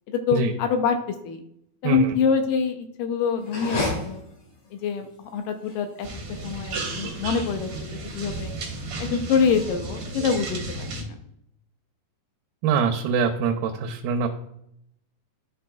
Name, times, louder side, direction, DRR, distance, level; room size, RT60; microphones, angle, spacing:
voice 1, 0.1-1.0 1.2-1.4 1.8-4.2 4.7-6.1 6.4-8.5 9.0-11.2, left 6 dB, 80° left, 6 dB, 2.1 m, -25 dB
voice 2, 1.8-2.2 12.6-14.3, right 5 dB, 85° right, 4 dB, 2.4 m, -24 dB
sound 1, 3.4-9.5, left 2 dB, 55° left, 3.3 m, -35 dB
sound 2, 6.0-11.0, right 3 dB, 65° right, 1.5 m, -33 dB
12.0 x 4.4 x 2.2 m, 0.75 s
omnidirectional pair, 4.2 m